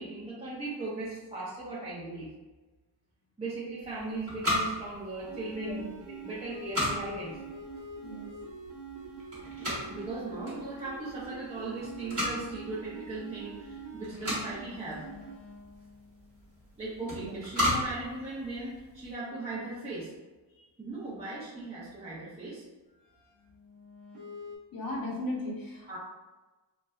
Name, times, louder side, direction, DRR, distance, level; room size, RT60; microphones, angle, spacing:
voice 1, 0.0-2.3 3.4-7.4 9.9-15.1 16.8-20.1 20.8-22.6 25.9-26.0, right 2 dB, 15° right, -10 dB, 0.5 m, -38 dB
sound 1, 3.8-19.1, left 1 dB, 30° right, 1.1 m, -36 dB
sound 2, 5.2-17.0 23.3-24.6, right 3 dB, 60° right, 0.9 m, -45 dB
voice 2, 24.7-26.0, left 1 dB, 50° left, -2 dB, 0.8 m, -36 dB
4.0 x 2.1 x 2.3 m, 1.2 s
wide cardioid pair, 160°, 45 cm